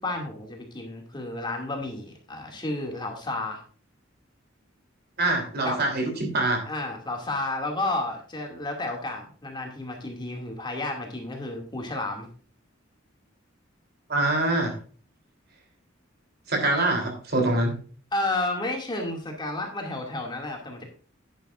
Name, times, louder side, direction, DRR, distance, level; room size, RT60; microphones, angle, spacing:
voice 1, 0.0-3.6 5.6-5.8 6.7-12.3 18.1-20.8, left 2 dB, 25° left, 1 dB, 2.4 m, -31 dB
voice 2, 5.2-6.7 14.1-14.8 16.5-17.7, right 2 dB, 55° right, 3 dB, 3.3 m, -24 dB
10.5 x 10.5 x 2.5 m, 0.41 s
head